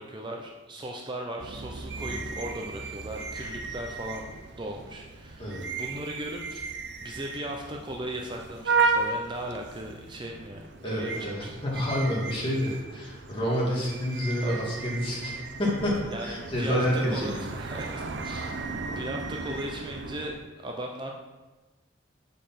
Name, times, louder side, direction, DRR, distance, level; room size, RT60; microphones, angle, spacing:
voice 1, 0.0-4.3 4.6-6.7 7.0-11.8 14.4-14.6 16.1-21.1, right 1 dB, 25° right, 1 dB, 0.6 m, -37 dB
sound 1, 1.4-20.3, right 4 dB, 65° right, 0.6 m, -35 dB
voice 2, 10.8-17.5, equal, 30° left, -5 dB, 2.2 m, -29 dB
6.6 x 5.1 x 5.8 m, 1.2 s
head